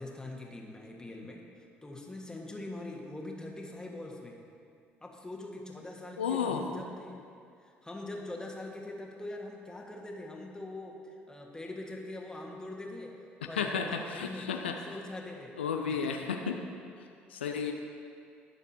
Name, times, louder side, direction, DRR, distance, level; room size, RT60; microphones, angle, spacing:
voice 1, 0.0-1.4 1.8-4.4 5.0-7.2 7.6-13.1 13.4-14.5 14.9-15.6 15.9-16.3, left 2 dB, 10° left, 0 dB, 1.7 m, -43 dB
voice 2, 6.2-6.6 13.6-14.8 15.6-16.6 17.3-17.7, left 6 dB, 80° left, 3 dB, 0.5 m, -32 dB
21.0 x 7.0 x 2.9 m, 2.4 s
figure-of-eight pair, 50°, 6 cm